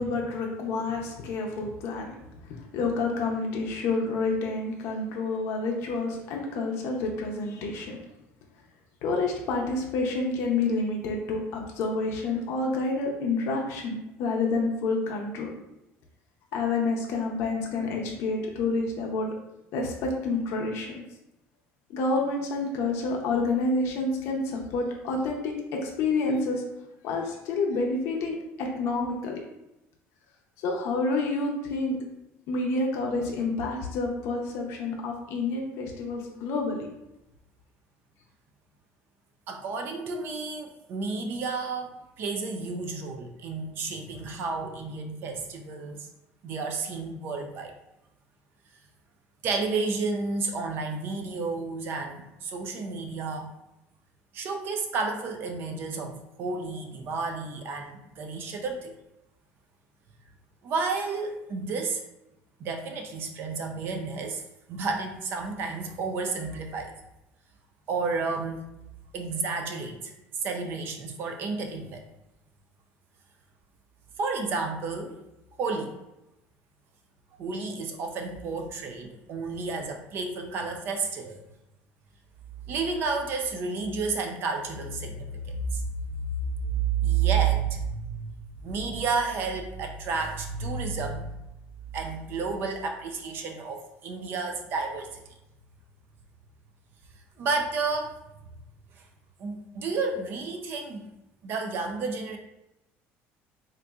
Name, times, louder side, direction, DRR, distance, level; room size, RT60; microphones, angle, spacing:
voice 1, 0.0-2.1 2.4-8.0 9.0-15.5 16.5-19.3 19.7-20.9 21.9-25.5 25.8-26.6 27.0-29.4 30.6-32.0 32.5-36.9, left 3 dB, 65° left, 0 dB, 0.6 m, -28 dB
voice 2, 39.5-46.1 46.4-47.7 49.4-53.5 54.3-59.0 60.6-62.0 62.6-64.4 64.7-66.9 67.9-68.7 69.1-70.1 70.4-72.0 74.2-75.2 75.6-76.0 77.4-81.4 82.7-85.8 86.6-88.4 88.6-91.4 91.9-95.2 97.4-98.2 99.0-99.1 99.4-101.1 101.4-102.4, right 4 dB, 45° right, 4 dB, 0.5 m, -31 dB
4.0 x 2.5 x 2.3 m, 0.89 s
cardioid pair, 155°, 5 cm